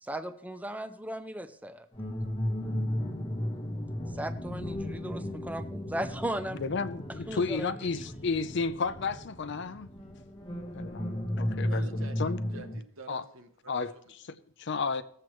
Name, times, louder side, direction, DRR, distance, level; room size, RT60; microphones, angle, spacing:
voice 1, 0.0-1.9 4.1-6.6 7.3-7.9, right 1 dB, 5° right, 0.5 m, -37 dB
sound 1, 1.9-12.8, left 1 dB, 25° left, 1.0 m, -35 dB
voice 2, 6.6-9.9 10.7-11.8 12.2-12.4 13.1-13.2 13.7-13.9 14.3-15.0, left 4 dB, 55° left, 0.5 m, -32 dB
voice 3, 11.6-14.1, right 4 dB, 70° right, 1.1 m, -48 dB
19.5 x 7.7 x 3.1 m
head